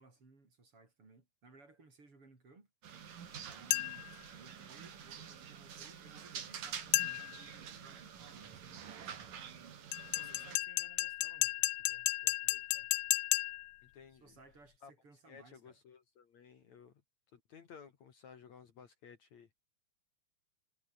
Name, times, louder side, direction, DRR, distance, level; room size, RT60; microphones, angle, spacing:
voice 1, 0.0-2.7 3.4-4.1 4.4-12.9 14.1-15.8, right 3 dB, 35° right, 5.8 m, -62 dB
sound 1, 2.8-10.6, right 8 dB, 65° right, 4.3 m, -48 dB
sound 2, 3.7-4.2 6.9-7.4 9.9-13.8, left 20 dB, 80° left, 2.5 m, -33 dB
voice 2, 10.2-10.6 13.8-14.4 14.8-14.9 15.3-17.0 17.3-19.5, left 6 dB, 55° left, 3.0 m, -56 dB
omnidirectional pair, 4.3 m